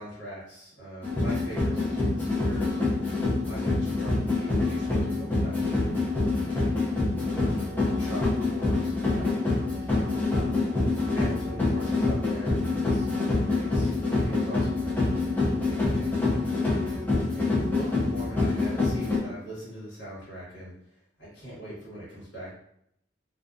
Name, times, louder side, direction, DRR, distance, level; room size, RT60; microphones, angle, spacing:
voice 1, 0.0-2.8 3.5-6.8 7.4-10.6 11.1-22.5, equal, 65° left, -7 dB, 1.2 m, -41 dB
sound 1, 1.0-19.2, left 2 dB, 10° left, 0.5 m, -26 dB
2.4 x 2.3 x 2.4 m, 0.72 s
head